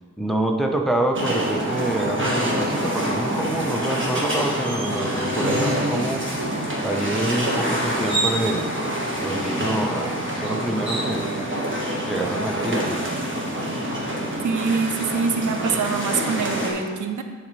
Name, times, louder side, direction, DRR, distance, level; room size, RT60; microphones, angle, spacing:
voice 1, 0.2-6.3 6.8-8.7 9.2-11.3 12.0-13.1, right 1 dB, ahead, 2 dB, 0.7 m, -26 dB
sound 1, 1.1-16.7, right 1 dB, 40° right, 1.5 m, -26 dB
voice 2, 14.4-17.2, right 5 dB, 80° right, 7 dB, 0.6 m, -24 dB
10.0 x 4.2 x 3.1 m, 1.5 s
cardioid pair, 75°, 30 cm